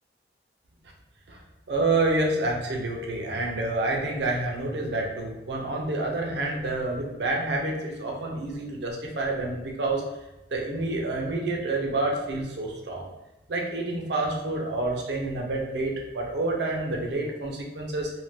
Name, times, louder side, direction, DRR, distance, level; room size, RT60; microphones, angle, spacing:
voice 1, 1.7-10.0 10.5-13.1 13.5-18.1, right 2 dB, 70° right, 0 dB, 0.5 m, -28 dB
2.5 x 2.2 x 3.3 m, 1.0 s
head